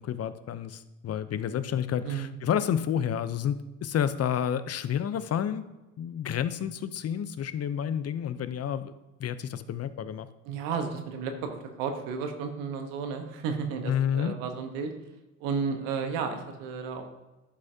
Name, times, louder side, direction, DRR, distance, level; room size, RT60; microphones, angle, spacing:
voice 1, 0.0-5.6 6.0-8.9 9.2-10.3 13.9-14.4, left 9 dB, 45° left, 13 dB, 0.7 m, -30 dB
voice 2, 10.4-14.9 15.4-17.1, right 5 dB, 85° right, 5 dB, 1.2 m, -33 dB
11.5 x 5.7 x 2.8 m, 1.0 s
supercardioid pair, 70°, 34 cm